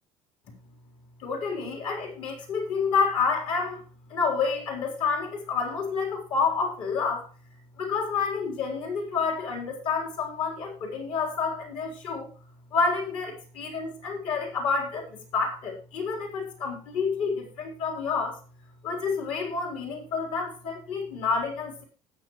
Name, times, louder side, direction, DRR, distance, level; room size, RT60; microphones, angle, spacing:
voice 1, 1.2-3.8 4.1-7.3 7.8-12.3 12.7-18.4 18.8-21.8, left 5 dB, 55° left, 1 dB, 3.8 m, -29 dB
18.5 x 7.0 x 3.1 m, 0.38 s
cardioid pair, 165°, 10 cm